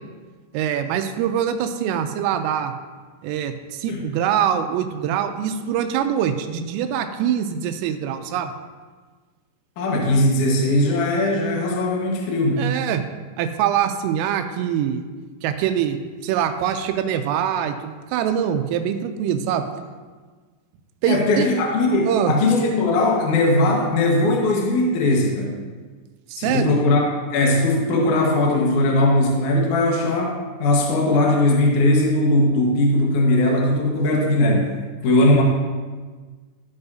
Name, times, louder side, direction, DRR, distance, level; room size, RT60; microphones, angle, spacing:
voice 1, 0.5-2.7 3.2-8.5 12.6-13.0 13.4-15.0 15.4-16.0 16.2-19.6 21.0-21.5 22.1-22.3 26.3-26.8, right 9 dB, 90° right, 7 dB, 3.3 m, -23 dB
voice 2, 9.8-12.7 21.1-25.5 26.4-34.7 35.0-35.4, left 1 dB, 75° left, -1 dB, 1.8 m, -19 dB
14.0 x 8.0 x 2.7 m, 1.4 s
omnidirectional pair, 5.8 m